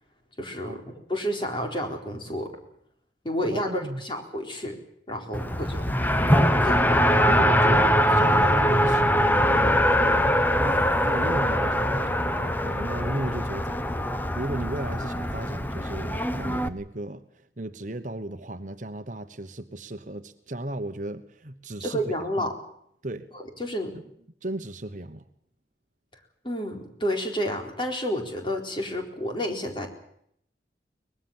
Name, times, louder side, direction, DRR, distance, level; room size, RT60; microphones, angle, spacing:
voice 1, 0.4-0.8 1.1-2.5 3.2-4.8 5.1-5.9 6.6-6.8 21.8-22.5 23.3-23.9 26.4-29.9, equal, 30° left, 3 dB, 4.2 m, -30 dB
voice 2, 3.5-4.0 5.4-6.2 7.3-13.9 14.1-22.5 23.0-23.3 23.9-24.0 24.4-25.3, right 1 dB, 45° right, 9 dB, 1.2 m, -35 dB
Race car auto racing, 5.3-16.7, equal, 10° left, 1.0 m, -22 dB
23.5 x 20.5 x 7.3 m, 0.71 s
head